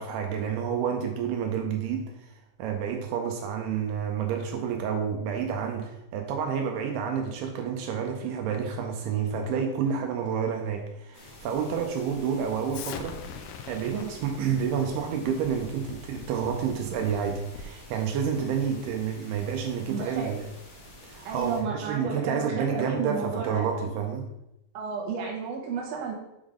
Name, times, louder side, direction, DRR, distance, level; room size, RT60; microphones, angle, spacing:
voice 1, 0.0-2.3 2.6-13.2 13.7-20.5 21.0-24.3, right 7 dB, 80° right, 3 dB, 2.6 m, -29 dB
sound 1, 11.1-21.6, left 1 dB, 65° left, 1.2 m, -49 dB
Explosion, 12.7-17.8, left 6 dB, 90° left, 2.1 m, -43 dB
voice 2, 19.9-20.3 21.2-23.7 24.7-26.1, right 5 dB, 60° right, -2 dB, 1.8 m, -32 dB
7.2 x 3.8 x 4.9 m, 0.88 s
omnidirectional pair, 4.8 m